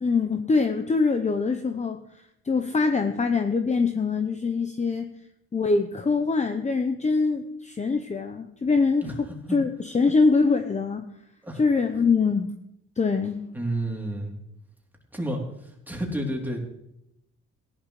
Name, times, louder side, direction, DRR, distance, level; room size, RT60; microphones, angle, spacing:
voice 1, 0.0-2.0 2.4-5.1 5.5-11.0 11.6-12.5 13.0-13.4, left 4 dB, 25° left, 7 dB, 0.8 m, -24 dB
voice 2, 13.5-14.3 15.1-16.6, right 1 dB, 5° right, -1 dB, 3.2 m, -30 dB
16.5 x 11.0 x 3.2 m, 0.81 s
cardioid pair, 90°, 30 cm